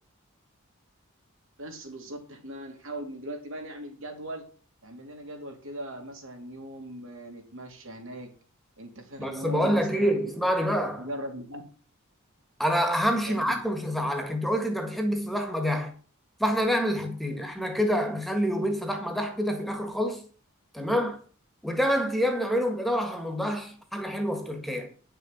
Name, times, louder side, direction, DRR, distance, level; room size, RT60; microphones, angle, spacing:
voice 1, 1.6-4.5 4.8-8.3 8.8-10.3 11.0-11.6 13.2-13.6 17.3-17.4, right 1 dB, 65° right, 3.0 m, -40 dB
voice 2, 9.2-11.1 12.6-15.9 16.4-20.2 20.7-21.2 21.6-24.9, equal, ahead, 1.7 m, -27 dB
10.0 x 6.7 x 7.4 m
head